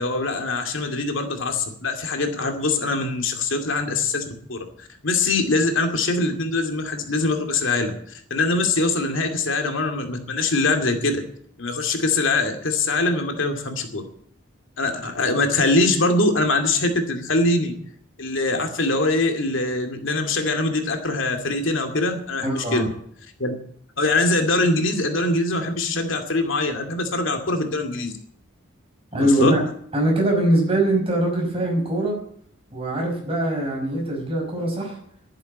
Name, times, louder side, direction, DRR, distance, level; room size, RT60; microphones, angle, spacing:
voice 1, 0.0-8.0 8.3-11.2 11.6-14.0 14.8-17.7 18.2-22.8 23.4-23.5 24.0-28.1 29.2-29.5, left 2 dB, 65° left, 5 dB, 2.4 m, -23 dB
voice 2, 22.4-22.9 29.1-29.7 29.9-32.2 32.7-35.0, right 1 dB, 25° right, 0 dB, 5.6 m, -22 dB
11.0 x 10.5 x 9.8 m, 0.65 s
head